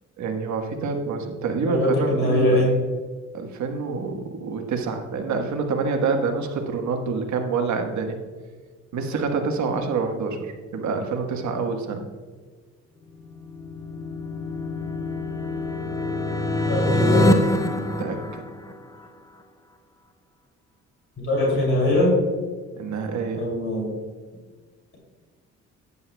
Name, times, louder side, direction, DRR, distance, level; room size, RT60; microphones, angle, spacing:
voice 1, 0.2-2.6 3.3-8.2 8.9-12.0 17.8-18.4 22.8-23.5, right 4 dB, 70° right, 4 dB, 1.3 m, -27 dB
voice 2, 1.5-2.7 16.7-17.5 21.2-22.2 23.4-24.0, left 1 dB, 45° left, -2 dB, 2.7 m, -22 dB
sound 1, 13.2-19.0, left 1 dB, 10° left, 0.7 m, -25 dB
11.0 x 9.6 x 2.2 m, 1.5 s
cardioid pair, 90°, 30 cm